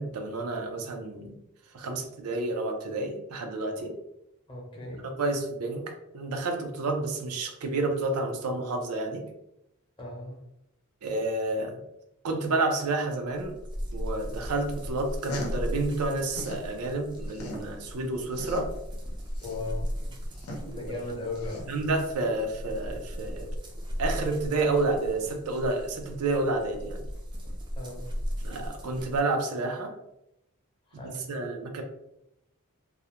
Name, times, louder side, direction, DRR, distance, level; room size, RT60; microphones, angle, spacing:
voice 1, 0.0-1.4 1.7-3.9 5.2-9.3 11.0-11.8 12.2-13.6 13.9-18.7 20.7-20.9 21.7-23.5 24.0-27.1 28.4-29.9 31.0-31.8, right 2 dB, 80° right, 4 dB, 0.5 m, -30 dB
voice 2, 4.5-5.1 10.0-10.4 19.4-20.2 20.6-21.7 27.8-28.1 30.9-31.3, left 2 dB, 20° left, -3 dB, 0.7 m, -37 dB
sound 1, 13.3-29.2, equal, 20° right, 0.4 m, -37 dB
sound 2, 15.0-16.7 17.0-22.0, left 1 dB, 70° left, 0.6 m, -40 dB
2.4 x 2.0 x 2.8 m, 0.83 s
head